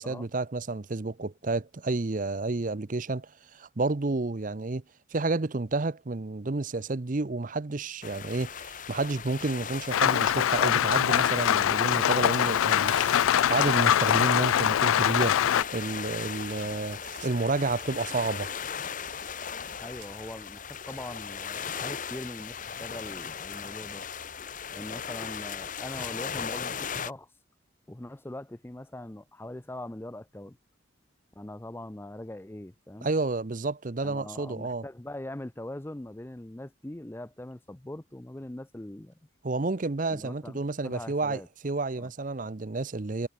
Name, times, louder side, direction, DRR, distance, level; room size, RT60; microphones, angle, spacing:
voice 1, 0.0-4.8 5.1-15.4 15.7-18.5 33.0-34.9 39.4-43.3, right 3 dB, 40° right, 0.7 m, -30 dB
sound 1, 8.0-27.1, left 7 dB, 40° left, 0.9 m, -38 dB
Rain, 9.9-15.6, left 10 dB, 85° left, 0.3 m, -23 dB
sound 2, 12.7-20.1, right 7 dB, 55° right, 1.8 m, -51 dB
voice 2, 19.8-24.1 24.7-27.3 27.9-30.6 31.4-33.1 34.0-39.1 40.1-41.5 41.9-42.1, left 1 dB, 10° left, 0.5 m, -41 dB
head